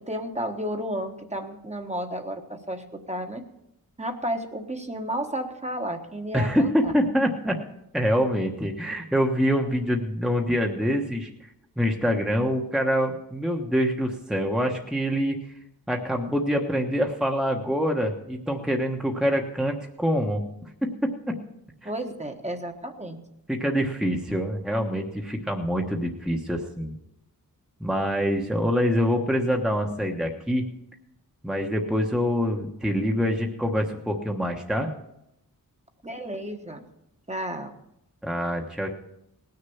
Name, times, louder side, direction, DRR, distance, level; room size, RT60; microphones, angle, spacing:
voice 1, 0.1-3.4 4.0-6.9 21.8-23.2 36.0-36.8 37.3-37.8, right 1 dB, 20° right, 4 dB, 1.4 m, -32 dB
voice 2, 6.3-7.6 7.9-11.3 11.8-15.3 15.9-20.7 21.8-21.9 23.5-26.9 27.8-30.7 31.4-34.9 38.2-38.9, equal, ahead, 2 dB, 1.2 m, -25 dB
18.5 x 6.7 x 7.1 m, 0.83 s
wide cardioid pair, 95°, 35 cm